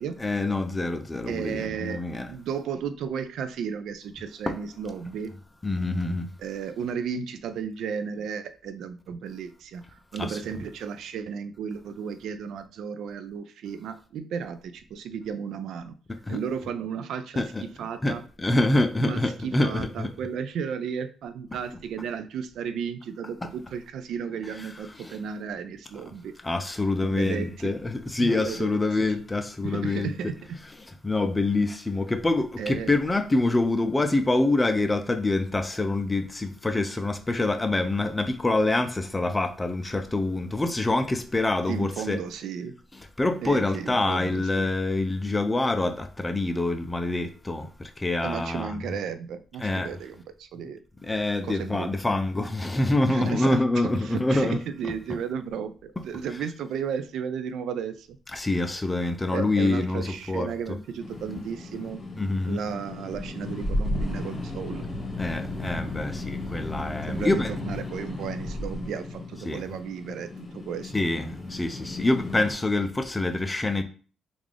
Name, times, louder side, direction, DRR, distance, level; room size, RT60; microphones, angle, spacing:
voice 1, 0.2-2.3 4.5-4.6 5.6-6.3 10.2-10.4 16.3-16.4 17.4-17.6 18.0-20.1 25.0-25.2 26.4-30.1 31.0-42.2 43.2-47.7 48.0-48.8 49.6-49.9 51.0-54.6 58.3-60.5 62.2-62.6 65.2-67.5 69.5-69.6 70.9-73.8, left 2 dB, 20° left, 0.5 m, -26 dB
voice 2, 1.3-2.0 2.3-5.3 6.4-15.9 16.3-18.2 19.0-26.3 27.0-27.7 28.2-28.8 29.6-30.3 32.6-32.9 41.7-42.7 43.4-44.6 48.2-50.8 51.4-51.9 53.1-58.2 59.3-62.0 62.5-64.9 67.1-70.9, right 7 dB, 80° right, 0.3 m, -34 dB
sound 1, 61.0-72.5, left 2 dB, 35° left, 1.1 m, -34 dB
3.6 x 2.4 x 3.2 m
cardioid pair, 80°, 0 cm